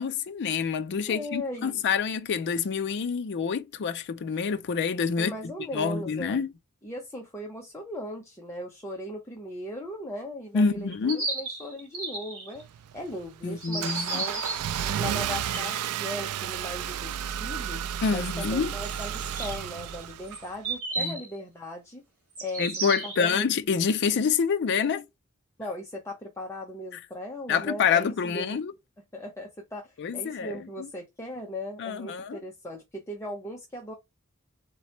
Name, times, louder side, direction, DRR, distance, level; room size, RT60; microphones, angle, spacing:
voice 1, 0.0-5.3 5.7-6.5 10.5-11.3 13.4-14.2 18.0-18.7 21.0-21.2 22.6-25.1 27.5-28.7 30.0-30.6 31.8-32.4, left 6 dB, 50° left, 0.4 m, -27 dB
voice 2, 1.1-1.8 5.2-6.4 6.8-12.7 12.9-14.4 14.8-17.8 18.1-22.0 22.4-22.7 23.0-23.5 25.6-28.6 29.1-33.9, left 1 dB, 15° left, 0.7 m, -38 dB
sound 1, 10.9-12.6 13.6-14.7 15.3-15.9 18.4-18.5 18.8-21.2 22.3-23.4, right 3 dB, 65° right, 2.7 m, -34 dB
Car / Engine starting, 12.5-20.7, right 9 dB, 85° right, 0.3 m, -32 dB
4.0 x 3.0 x 4.3 m
head